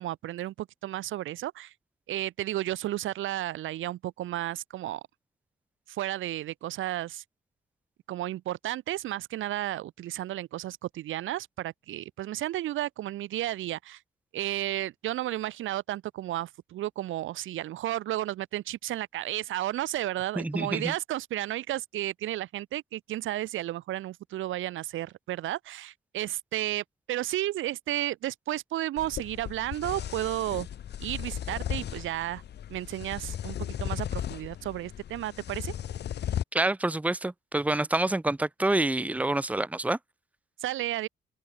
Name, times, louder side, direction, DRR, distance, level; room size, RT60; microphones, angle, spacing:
voice 1, 0.0-1.7 2.1-5.0 5.9-7.2 8.1-14.0 14.3-30.7 31.0-32.4 32.7-35.7 40.6-41.1, right 14 dB, 80° right, 1.6 m, -33 dB
voice 2, 20.4-20.9 36.5-40.0, right 2 dB, 5° right, 1.0 m, -27 dB
sound 1, 29.0-36.4, left 10 dB, 60° left, 1.1 m, -36 dB
cardioid pair, 90°, 20 cm